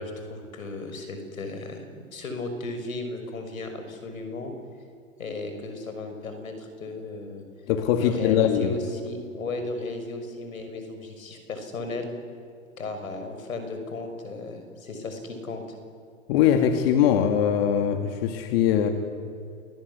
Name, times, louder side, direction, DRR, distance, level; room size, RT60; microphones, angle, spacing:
voice 1, 0.0-4.5 5.2-7.4 8.0-12.1 12.8-15.6, left 2 dB, 80° left, 6 dB, 6.4 m, -35 dB
voice 2, 7.7-8.7 16.3-18.9, left 9 dB, 45° left, 6 dB, 2.5 m, -21 dB
28.5 x 20.5 x 10.0 m, 2.4 s
hypercardioid pair, 125°, 40 cm